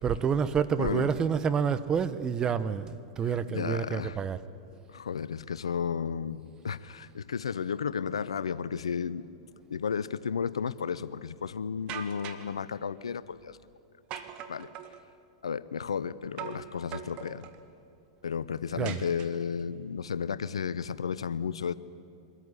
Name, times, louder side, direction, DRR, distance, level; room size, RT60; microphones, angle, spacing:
voice 1, 0.0-4.4 18.8-19.0, right 7 dB, 25° right, 14 dB, 0.9 m, -28 dB
voice 2, 3.5-4.2 4.9-9.3 9.7-13.6 14.5-14.7 15.4-17.5 18.2-21.7, left 6 dB, 90° left, 17 dB, 0.7 m, -33 dB
sound 1, 11.9-12.5 14.1-15.0 16.4-16.7 16.9-17.6 18.8-19.6, right 9 dB, 45° right, 1.7 m, -41 dB
23.5 x 14.0 x 9.7 m, 2.6 s
hypercardioid pair, 110°, 3 cm